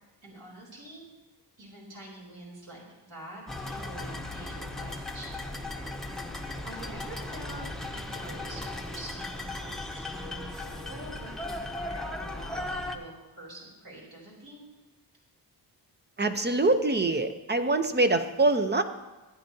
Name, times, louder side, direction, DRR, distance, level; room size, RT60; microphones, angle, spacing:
voice 1, 0.2-1.1 1.6-5.7 6.6-14.6, right 1 dB, 60° right, -4 dB, 3.6 m, -46 dB
sound 1, 3.5-13.0, left 2 dB, ahead, 0.9 m, -37 dB
voice 2, 16.2-18.8, right 2 dB, 25° right, 8 dB, 0.7 m, -24 dB
15.5 x 9.6 x 2.8 m, 1.1 s
cardioid pair, 95°, 41 cm